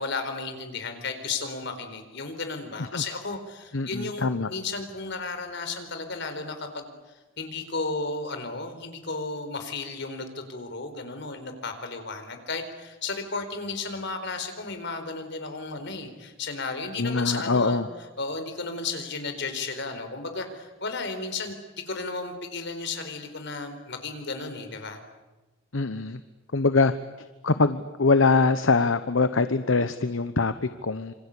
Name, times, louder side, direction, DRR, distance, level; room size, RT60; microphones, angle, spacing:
voice 1, 0.0-6.9 7.4-17.8 18.2-25.0, left 3 dB, 60° left, 7 dB, 4.4 m, -34 dB
voice 2, 3.7-4.5 17.0-17.9 25.7-26.2 26.5-26.9 27.4-31.1, left 3 dB, 80° left, 11 dB, 1.0 m, -23 dB
27.0 x 26.0 x 8.5 m, 1.1 s
head